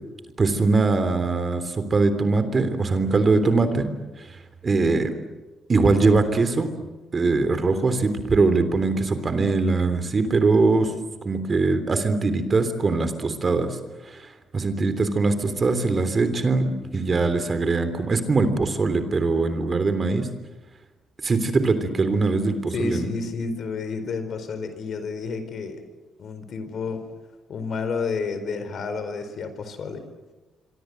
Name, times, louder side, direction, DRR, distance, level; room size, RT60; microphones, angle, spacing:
voice 1, 0.4-3.9 4.6-5.1 5.7-6.7 7.1-10.9 11.2-13.8 14.1-14.2 14.5-16.7 16.9-20.3 21.2-23.1, right 3 dB, 35° right, 10 dB, 3.3 m, -21 dB
voice 2, 22.7-25.8 26.2-27.0 27.5-30.0, left 4 dB, 60° left, 10 dB, 4.5 m, -30 dB
27.0 x 24.0 x 7.9 m, 1.2 s
cardioid pair, 90°, 0 cm